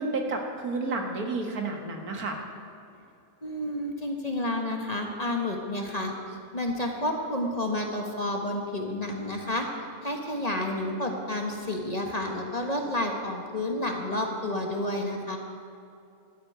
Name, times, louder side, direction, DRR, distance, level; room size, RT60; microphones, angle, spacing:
voice 1, 0.0-2.4, right 3 dB, 80° right, 2 dB, 2.1 m, -31 dB
voice 2, 3.4-6.1 6.5-9.7 10.0-15.4, left 1 dB, 25° left, 2 dB, 1.4 m, -30 dB
13.0 x 8.8 x 9.1 m, 2.6 s
omnidirectional pair, 1.5 m